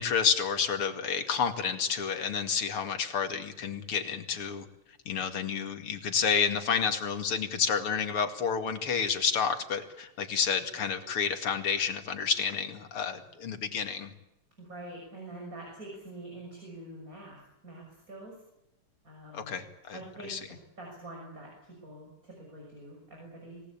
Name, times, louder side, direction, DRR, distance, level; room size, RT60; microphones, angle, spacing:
voice 1, 0.0-4.7 5.1-14.1 19.3-20.0 20.3-20.4, left 6 dB, 90° left, 7 dB, 3.1 m, -30 dB
voice 2, 14.6-18.4 19.0-19.6 19.9-23.6, right 1 dB, 40° right, -1 dB, 7.1 m, -45 dB
26.5 x 18.5 x 8.7 m, 0.89 s
omnidirectional pair, 2.4 m